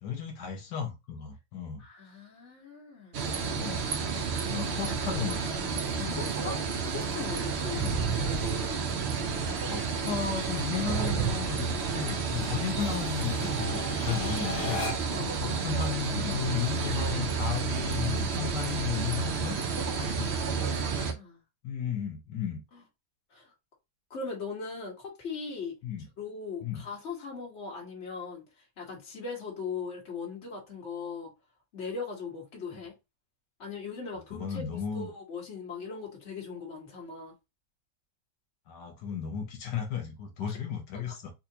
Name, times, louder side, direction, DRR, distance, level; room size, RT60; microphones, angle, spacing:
voice 1, 0.0-1.8 3.5-3.9 4.4-6.2 7.7-8.0 9.7-14.9 15.4-19.6 20.1-20.3 21.6-22.6 25.8-26.1 26.6-26.8 34.3-35.1 38.7-41.3, left 8 dB, 85° left, 1.5 m, -34 dB
voice 2, 1.8-3.3 6.1-6.6 6.9-7.8 15.1-15.4 20.0-21.4 23.3-23.5 24.1-25.8 26.2-28.4 28.8-31.3 31.7-33.0 33.6-37.3 40.5-40.6 40.9-41.1, left 5 dB, 45° left, 1.6 m, -39 dB
sound 1, 3.1-21.1, right 5 dB, 60° right, 0.7 m, -31 dB
sound 2, 5.0-15.3, left 2 dB, 60° left, 1.5 m, -43 dB
sound 3, 7.6-9.3 10.7-12.1, right 5 dB, 85° right, 1.3 m, -33 dB
4.2 x 2.5 x 2.8 m
omnidirectional pair, 1.8 m